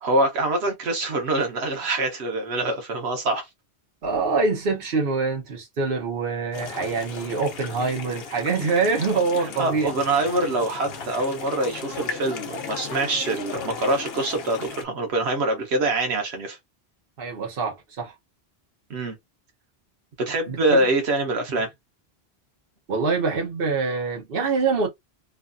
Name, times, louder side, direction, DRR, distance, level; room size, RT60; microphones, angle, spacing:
voice 1, 0.0-3.5 9.6-16.6 18.9-19.1 20.2-21.7, right 2 dB, 85° right, 1.1 m, -24 dB
voice 2, 4.0-9.9 17.2-18.1 20.5-20.9 21.5-21.6 22.9-24.9, right 4 dB, 60° right, 1.1 m, -25 dB
sound 1, 6.5-14.8, left 6 dB, 70° left, 0.9 m, -36 dB
3.1 x 2.2 x 2.5 m
omnidirectional pair, 1.1 m